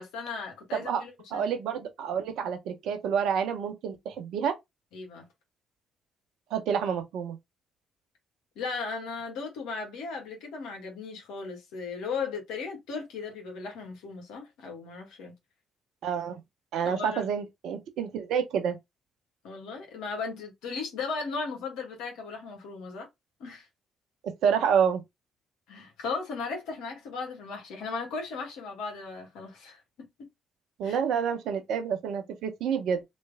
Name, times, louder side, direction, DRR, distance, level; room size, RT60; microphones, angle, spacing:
voice 1, 0.0-1.5 4.9-5.3 8.5-15.3 16.8-17.3 19.4-23.1 23.4-23.7 25.7-30.3 30.8-31.0, left 4 dB, 70° left, 1.5 m, -36 dB
voice 2, 0.7-1.0 1.3-4.6 6.5-7.4 16.0-16.4 16.7-18.8 24.4-25.0 30.8-33.0, right 7 dB, 65° right, 0.9 m, -28 dB
3.3 x 3.1 x 3.4 m
hypercardioid pair, 45°, 0 cm